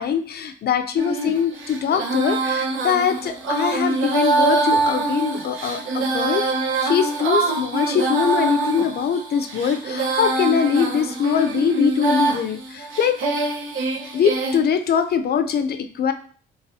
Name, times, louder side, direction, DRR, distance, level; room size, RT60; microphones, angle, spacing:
voice 1, 0.0-6.4 6.8-13.2 14.1-16.1, left 7 dB, 55° left, 9 dB, 0.5 m, -22 dB
Female singing, 1.0-14.6, right 3 dB, 80° right, 0.9 m, -24 dB
4.0 x 3.9 x 2.7 m, 0.43 s
cardioid pair, 90°, 20 cm